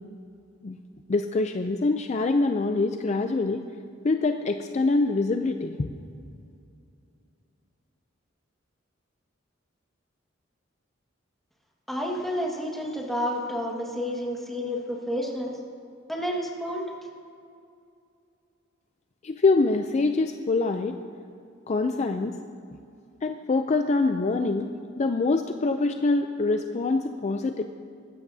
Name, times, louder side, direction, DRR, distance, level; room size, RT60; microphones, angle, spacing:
voice 1, 1.1-3.6 4.0-5.9 19.2-21.0 21.7-22.3 23.2-24.7 25.0-27.6, left 3 dB, 35° left, 6 dB, 0.4 m, -24 dB
voice 2, 11.9-15.5 16.1-16.8, equal, ahead, -1 dB, 1.6 m, -30 dB
19.5 x 15.0 x 2.7 m, 2.5 s
head